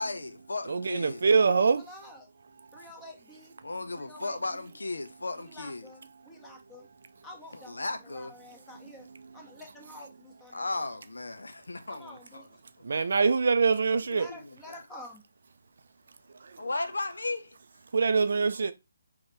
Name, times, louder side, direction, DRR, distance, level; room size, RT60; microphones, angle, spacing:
voice 1, 0.0-1.2 3.6-5.9 7.7-8.3 10.5-12.5 13.7-14.8 16.6-17.6, left 2 dB, 70° left, 0.5 m, -36 dB
voice 2, 0.7-1.8 12.8-14.3 17.9-18.7, right 5 dB, 55° right, 0.4 m, -24 dB
voice 3, 1.7-2.3 2.7-3.5 3.9-4.7 5.4-6.9 7.2-9.1 9.3-10.9 11.9-12.5 14.1-15.2, left 1 dB, 10° left, 1.1 m, -49 dB
3.8 x 3.0 x 3.3 m
figure-of-eight pair, 145°, 0 cm